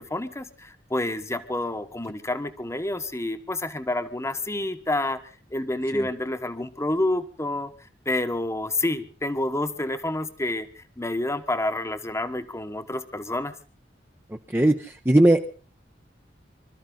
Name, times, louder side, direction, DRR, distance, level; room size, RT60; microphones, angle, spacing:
voice 1, 0.0-5.2 5.5-7.7 8.0-13.5, left 1 dB, 15° left, 9 dB, 1.2 m, -28 dB
voice 2, 14.3-15.5, right 1 dB, 10° right, 4 dB, 0.8 m, -20 dB
26.0 x 13.0 x 3.9 m, 0.37 s
head